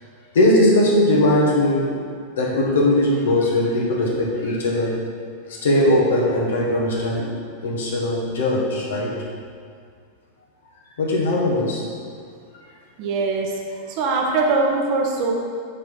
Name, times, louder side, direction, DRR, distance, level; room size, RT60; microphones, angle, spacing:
voice 1, 0.3-1.9 2.4-4.9 5.5-7.2 7.6-9.1 11.0-11.8, left 1 dB, 60° left, -3 dB, 1.7 m, -19 dB
voice 2, 13.0-15.3, right 3 dB, 45° right, 0 dB, 1.2 m, -22 dB
7.1 x 4.7 x 5.7 m, 2.1 s
figure-of-eight pair, 90°, 0 cm